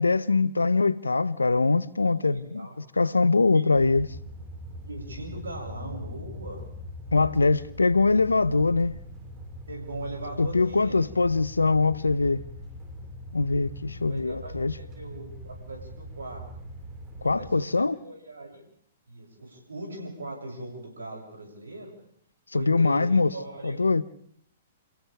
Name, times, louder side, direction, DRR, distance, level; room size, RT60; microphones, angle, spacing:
voice 1, 0.0-2.7 3.0-4.1 7.1-9.0 10.4-12.4 13.3-14.7 17.2-18.0 22.5-23.3 23.6-24.0, left 3 dB, 90° left, 0.8 m, -23 dB
voice 2, 2.0-2.7 3.5-3.6 4.8-6.6 9.7-11.0 14.1-16.4 17.3-18.6 19.1-21.9 22.5-23.8, right 2 dB, 80° right, 7.1 m, -40 dB
sound 1, 3.7-17.5, left 1 dB, 25° right, 6.6 m, -42 dB
29.5 x 29.0 x 3.5 m
figure-of-eight pair, 115°, 0 cm